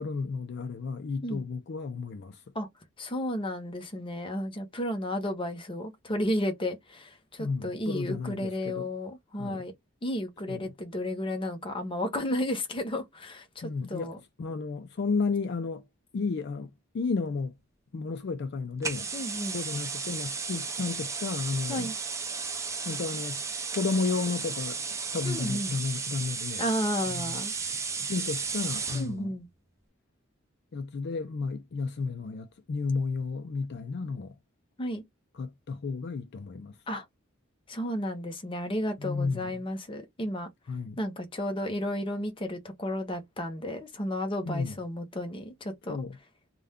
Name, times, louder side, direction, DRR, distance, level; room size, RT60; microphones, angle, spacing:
voice 1, 0.0-2.4 7.4-8.9 9.4-9.7 10.5-10.7 13.6-15.9 16.1-17.6 17.9-19.1 19.5-21.9 22.8-23.4 23.7-24.9 25.1-26.7 27.1-27.4 28.0-29.3 30.7-34.4 35.4-36.8 39.0-39.6 40.7-41.0 44.4-44.8 45.9-46.2, left 4 dB, 55° left, 0.4 m, -32 dB
voice 2, 3.0-9.7 10.0-14.2 19.1-19.6 21.7-21.9 25.2-25.7 26.6-27.5 28.9-29.5 34.8-35.0 36.9-37.0 37.7-40.5 41.0-46.0, left 1 dB, 25° left, 0.7 m, -33 dB
sound 1, 18.8-29.1, right 5 dB, 15° right, 0.4 m, -34 dB
2.3 x 2.2 x 3.5 m
head